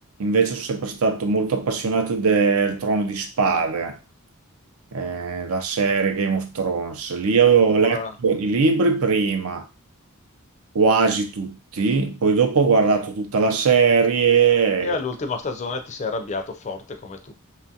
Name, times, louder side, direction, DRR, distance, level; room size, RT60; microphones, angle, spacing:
voice 1, 0.2-4.0 4.9-9.7 10.7-15.0, right 5 dB, 75° right, 0.5 m, -20 dB
voice 2, 7.8-8.1 14.8-17.3, left 3 dB, 35° left, 0.4 m, -29 dB
2.9 x 2.3 x 2.7 m
head